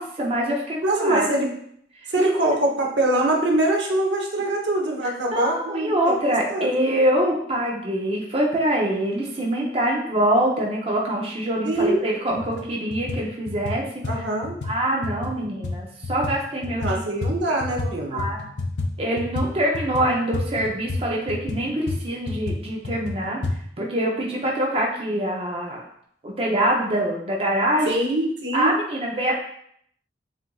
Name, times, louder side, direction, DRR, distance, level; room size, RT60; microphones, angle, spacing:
voice 1, 0.0-1.3 2.2-2.3 5.0-14.3 14.6-17.0 17.5-18.4 19.0-23.4 23.8-25.8 26.2-28.0 28.5-29.4, right 1 dB, 35° right, -2 dB, 0.5 m, -24 dB
voice 2, 0.8-1.5 2.1-6.8 11.6-12.0 14.0-14.5 16.8-18.2 27.9-28.7, right 1 dB, 75° right, 0 dB, 0.9 m, -23 dB
sound 1, 11.8-11.9 12.3-12.6 12.9-17.9 18.2-23.6, left 2 dB, 65° left, 0.6 m, -30 dB
7.4 x 2.5 x 2.3 m, 0.68 s
head